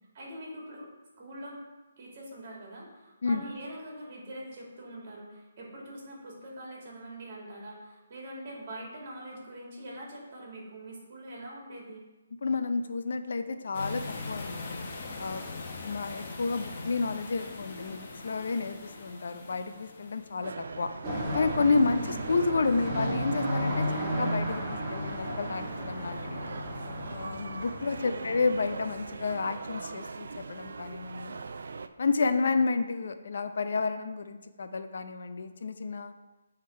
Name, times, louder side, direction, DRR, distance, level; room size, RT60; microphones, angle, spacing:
voice 1, 0.1-0.9 1.2-1.6 2.0-12.0 21.9-22.1 28.0-28.3, right 1 dB, 40° right, -3 dB, 2.2 m, -43 dB
voice 2, 12.4-14.7 15.2-15.4 15.8-20.9 21.3-26.5 27.1-31.4 32.0-36.1, left 4 dB, 65° left, 8 dB, 0.6 m, -30 dB
sound 1, 13.7-20.5, left 3 dB, 40° left, 1.1 m, -41 dB
sound 2, 20.4-31.9, right 4 dB, 70° right, 0.4 m, -41 dB
sound 3, 21.0-29.1, equal, 25° right, 1.5 m, -34 dB
8.3 x 3.6 x 4.4 m, 1.1 s
hypercardioid pair, 160°, 0 cm